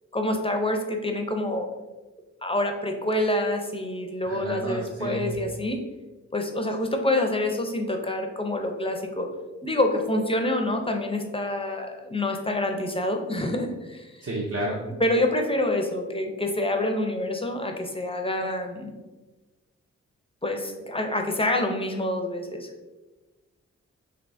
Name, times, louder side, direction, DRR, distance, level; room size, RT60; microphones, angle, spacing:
voice 1, 0.1-1.7 2.4-5.8 6.3-9.3 9.6-14.2 15.0-18.9 20.4-22.7, left 1 dB, 20° left, 4 dB, 0.5 m, -27 dB
voice 2, 4.3-5.3 14.2-14.8, right 1 dB, 50° right, -2 dB, 0.7 m, -31 dB
3.4 x 2.8 x 2.6 m, 1.2 s
cardioid pair, 45°, 30 cm